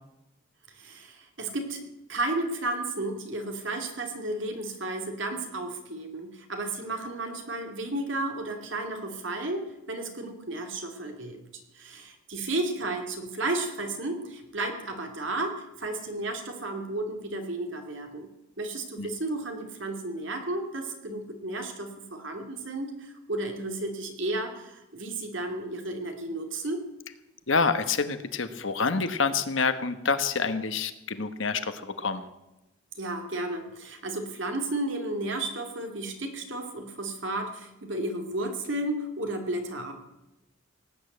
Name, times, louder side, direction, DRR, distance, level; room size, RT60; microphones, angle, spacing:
voice 1, 0.7-1.8 2.1-11.4 11.7-18.3 18.6-26.8 32.9-39.9, right 2 dB, 65° right, 4 dB, 2.6 m, -33 dB
voice 2, 27.5-32.3, left 4 dB, 70° left, 10 dB, 1.2 m, -27 dB
18.0 x 8.8 x 8.1 m, 0.95 s
head